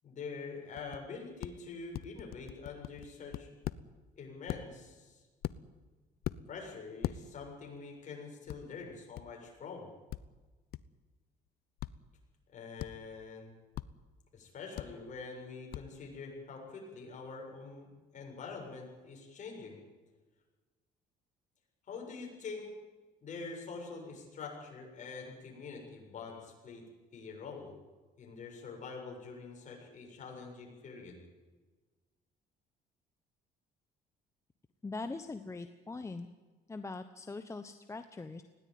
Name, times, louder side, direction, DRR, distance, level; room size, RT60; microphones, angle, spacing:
voice 1, 0.0-3.5 4.2-5.3 6.5-9.9 12.5-13.5 14.3-19.8 21.9-22.7 23.2-26.8 27.1-27.8 28.2-31.2, left 4 dB, 45° left, 1 dB, 7.3 m, -45 dB
sound 1, 0.8-1.0 1.4-1.5 1.9-3.8 4.5-4.6 5.4-5.8 6.2-6.4 7.0-7.2 8.5-8.6 9.1-9.2 10.1-10.2 10.7-10.8 11.8-11.9 12.8-12.9 13.7-13.9 14.8-14.9 15.7-15.8, left 14 dB, 65° left, 0.8 m, -38 dB
voice 2, 34.8-36.3 36.7-38.4, left 3 dB, 15° left, 9 dB, 1.0 m, -42 dB
20.0 x 17.5 x 9.5 m, 1.3 s
cardioid pair, 110°, 17 cm